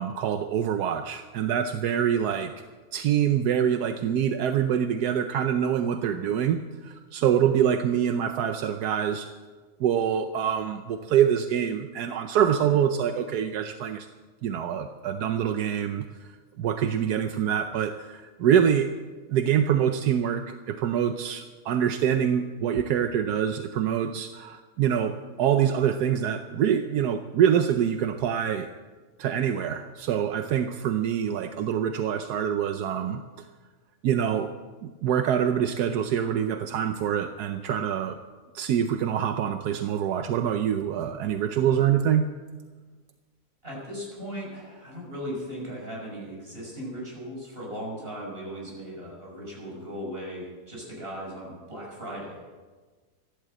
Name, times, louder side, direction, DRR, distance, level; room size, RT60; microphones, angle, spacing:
voice 1, 0.0-2.5 2.9-9.3 9.8-14.1 14.4-16.3 16.6-18.9 19.3-28.7 29.2-33.4 34.0-34.5 34.8-38.2 38.5-42.3, right 9 dB, 80° right, 8 dB, 1.3 m, -25 dB
voice 2, 43.6-52.5, equal, 35° right, -2 dB, 6.1 m, -37 dB
15.0 x 12.0 x 7.7 m, 1.4 s
omnidirectional pair, 1.7 m